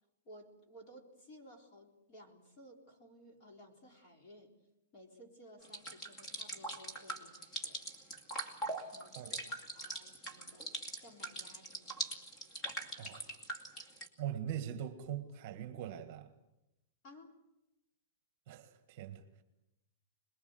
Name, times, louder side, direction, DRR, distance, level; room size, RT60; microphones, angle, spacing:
voice 1, 0.3-4.5 4.9-7.8 8.8-10.7 11.0-12.1 17.0-17.4, equal, 30° left, 3.9 m, -57 dB
sound 1, 5.6-14.1, right 2 dB, 15° left, 2.4 m, -42 dB
voice 2, 13.0-13.3 14.2-16.3 18.5-19.2, right 10 dB, 35° right, 1.7 m, -42 dB
27.0 x 21.0 x 8.0 m
supercardioid pair, 170°, 0 cm